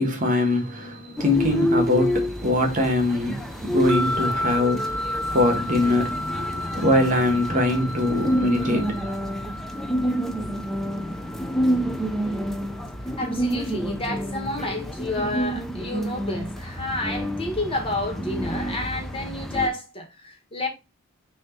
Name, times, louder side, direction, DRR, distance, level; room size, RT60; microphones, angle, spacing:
voice 1, 0.0-9.3, left 1 dB, 40° right, 1.6 m, -23 dB
sound 1, 1.2-19.7, equal, ahead, 0.7 m, -28 dB
sound 2, 3.9-13.2, left 1 dB, 60° right, 0.9 m, -33 dB
voice 2, 13.2-20.7, left 2 dB, 25° left, 1.9 m, -30 dB
6.5 x 3.0 x 5.6 m
head